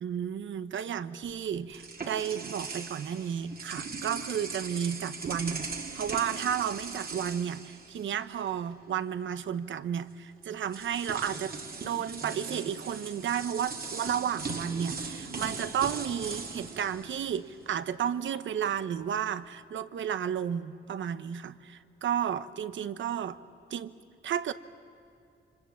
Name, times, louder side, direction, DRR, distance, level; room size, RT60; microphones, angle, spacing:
voice 1, 0.0-5.7 5.9-11.6 11.8-23.4 23.7-23.9 24.2-24.5, right 8 dB, 70° right, 13 dB, 0.9 m, -32 dB
sound 1, 1.2-8.5 8.8-9.0 10.1-10.2 10.7-17.8, right 4 dB, 45° right, 2.3 m, -39 dB
27.5 x 25.0 x 7.6 m, 2.6 s
cardioid pair, 85°, 20 cm